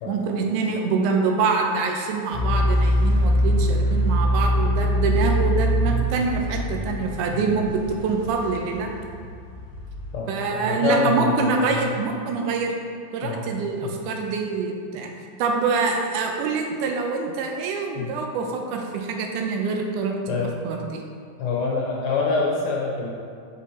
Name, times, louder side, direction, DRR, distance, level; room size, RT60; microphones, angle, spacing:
voice 1, 0.1-8.9 10.3-12.7 13.1-15.1 15.4-21.0, right 4 dB, 85° right, 2 dB, 2.1 m, -25 dB
sound 1, 2.3-10.1, equal, 55° left, 1.8 m, -23 dB
voice 2, 10.1-12.0 13.2-13.5 13.8-13.9 18.0-18.1 20.3-20.5 21.4-23.1, left 4 dB, 75° left, -2 dB, 1.7 m, -26 dB
5.4 x 5.2 x 4.2 m, 2.3 s
omnidirectional pair, 3.7 m